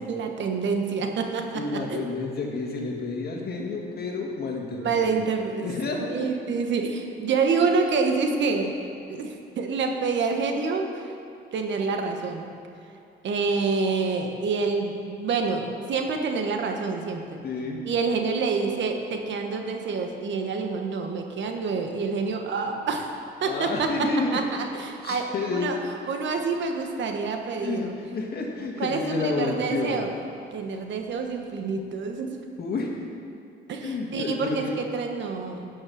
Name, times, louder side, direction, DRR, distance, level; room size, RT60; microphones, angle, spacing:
voice 1, 0.0-1.6 1.9-2.0 4.8-5.7 6.1-8.7 9.1-10.9 11.5-12.5 13.2-17.4 17.9-23.1 23.4-23.9 24.3-25.8 26.1-27.9 28.8-30.1 30.5-32.3 33.7-35.7, right 4 dB, 65° right, 4 dB, 1.2 m, -27 dB
voice 2, 1.5-5.2 5.6-6.3 17.4-17.8 23.4-24.4 25.0-25.8 27.6-30.0 32.6-33.1 33.8-34.8, left 3 dB, 50° left, 0 dB, 1.9 m, -30 dB
11.0 x 6.4 x 6.4 m, 2.6 s
cardioid pair, 90°, 20 cm